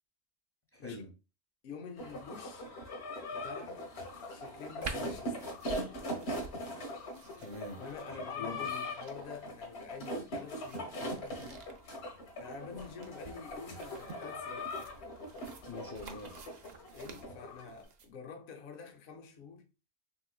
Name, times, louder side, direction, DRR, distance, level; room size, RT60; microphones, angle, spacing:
voice 1, 0.7-1.1 7.1-7.8 8.4-8.8 15.7-16.3, left 2 dB, 20° left, 0.4 m, -44 dB
voice 2, 1.6-2.7 3.3-3.9 4.3-5.4 7.8-11.7 12.4-14.7 16.9-19.7, left 5 dB, 60° left, 0.8 m, -48 dB
sound 1, 2.0-17.7, left 1 dB, 80° left, 1.1 m, -41 dB
sound 2, 4.8-18.1, right 4 dB, 55° right, 0.5 m, -50 dB
3.3 x 3.0 x 2.2 m
omnidirectional pair, 1.1 m